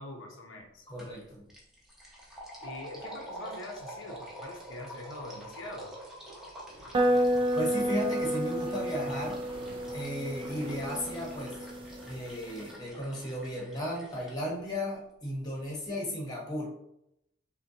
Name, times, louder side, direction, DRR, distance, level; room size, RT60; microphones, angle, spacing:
voice 1, 0.0-0.8 2.6-5.9, left 2 dB, 70° left, 1 dB, 0.6 m, -43 dB
voice 2, 0.9-1.5 7.5-9.4 9.9-11.6 12.0-16.7, equal, 20° left, -2 dB, 1.0 m, -35 dB
sound 1, 1.0-1.2 1.5-14.3, right 1 dB, ahead, 0.8 m, -47 dB
sound 2, 6.7-12.2, equal, 60° right, 1.5 m, -49 dB
sound 3, 6.9-12.7, right 1 dB, 25° right, 0.3 m, -31 dB
5.1 x 2.2 x 2.7 m, 0.80 s
head